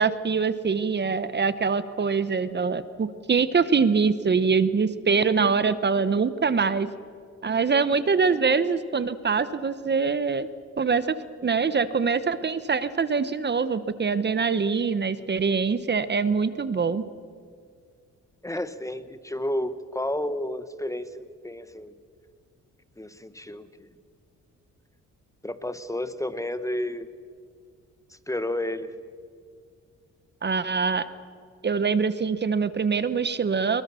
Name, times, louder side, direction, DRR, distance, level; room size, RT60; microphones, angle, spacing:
voice 1, 0.0-6.9 7.4-10.5 10.8-11.1 11.4-17.0 30.4-31.1 31.6-33.8, right 5 dB, 35° right, 14 dB, 1.0 m, -24 dB
voice 2, 18.4-21.9 23.0-23.7 25.4-27.1 28.3-28.9, left 1 dB, 10° left, 12 dB, 1.1 m, -31 dB
24.0 x 22.0 x 7.0 m, 2.1 s
cardioid pair, 90°, 30 cm